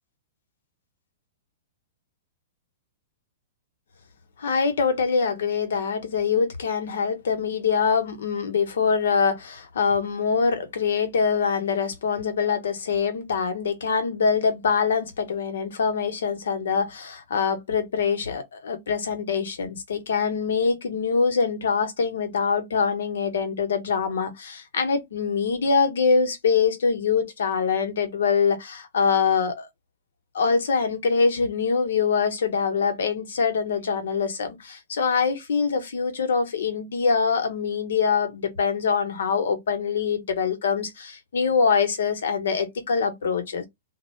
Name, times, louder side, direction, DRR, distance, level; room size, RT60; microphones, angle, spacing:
voice 1, 4.4-29.7 30.3-43.6, left 5 dB, 90° left, 0.9 m, -24 dB
2.4 x 2.1 x 3.0 m
hypercardioid pair, 170°, 0 cm